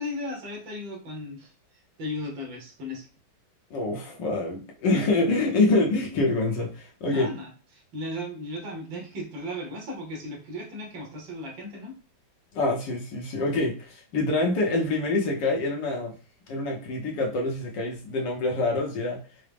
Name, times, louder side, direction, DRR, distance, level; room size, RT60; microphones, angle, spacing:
voice 1, 0.0-1.5 2.0-3.1 7.1-12.0, left 1 dB, 75° right, 0 dB, 1.8 m, -36 dB
voice 2, 3.7-7.3 12.5-16.1 16.5-19.2, left 2 dB, 70° left, 0 dB, 1.4 m, -26 dB
4.7 x 2.1 x 3.3 m, 0.35 s
omnidirectional pair, 2.1 m